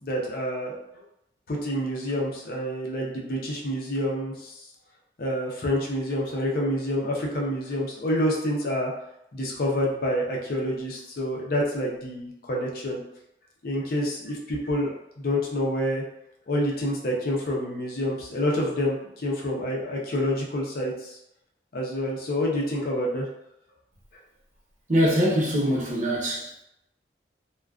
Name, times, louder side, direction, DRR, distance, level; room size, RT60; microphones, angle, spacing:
voice 1, 0.0-0.8 1.5-4.6 5.2-8.9 9.3-13.0 13.6-14.9 15.2-16.0 16.5-21.2 21.7-23.3, equal, 55° left, -2 dB, 0.6 m, -27 dB
voice 2, 24.9-26.6, equal, 45° right, -5 dB, 0.7 m, -23 dB
2.4 x 2.2 x 2.3 m, 0.80 s
head